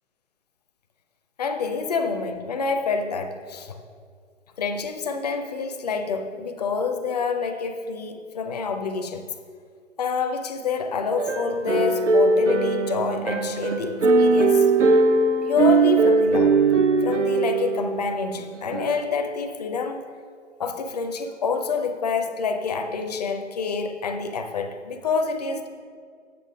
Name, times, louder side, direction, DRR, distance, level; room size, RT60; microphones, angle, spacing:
voice 1, 1.4-3.8 4.6-9.2 10.0-14.7 15.4-16.6 17.0-20.0 20.6-25.7, left 5 dB, 35° left, 7 dB, 0.6 m, -27 dB
sound 1, 11.2-18.2 18.7-19.0, right 3 dB, 80° right, 0.8 m, -20 dB
8.5 x 6.5 x 4.8 m, 2.1 s
figure-of-eight pair, 135°, 36 cm